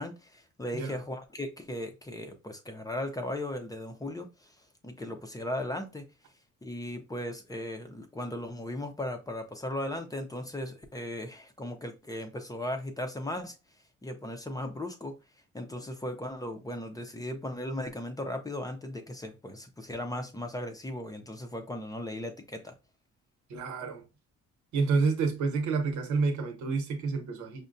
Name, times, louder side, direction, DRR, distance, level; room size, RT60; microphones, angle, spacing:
voice 1, 0.0-4.6 4.8-6.0 6.6-13.6 14.0-15.1 15.5-22.7, left 1 dB, 10° left, 0.5 m, -37 dB
voice 2, 23.5-24.0 24.7-27.7, right 4 dB, 85° right, 1.0 m, -29 dB
5.4 x 2.1 x 2.5 m
cardioid pair, 135°, 29 cm